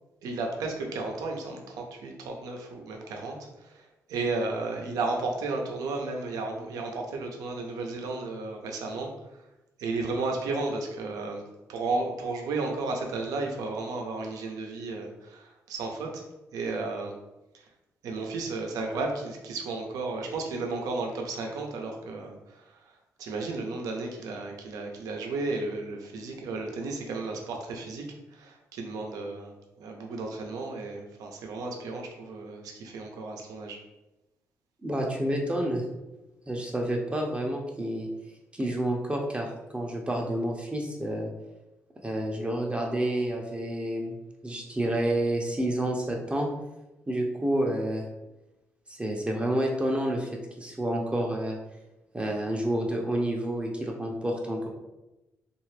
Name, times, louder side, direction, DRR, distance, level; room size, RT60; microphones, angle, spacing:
voice 1, 0.2-9.5 9.8-16.2 16.5-17.2 17.5-17.7 18.0-33.8, right 3 dB, 85° right, 2 dB, 0.5 m, -33 dB
voice 2, 34.8-35.8 36.5-38.1 38.5-41.3 42.0-44.2 44.4-46.5 47.1-48.0 48.9-51.6 52.1-54.7, right 1 dB, 20° right, 0 dB, 0.6 m, -29 dB
2.7 x 2.4 x 3.2 m, 0.99 s
supercardioid pair, 60°, 6 cm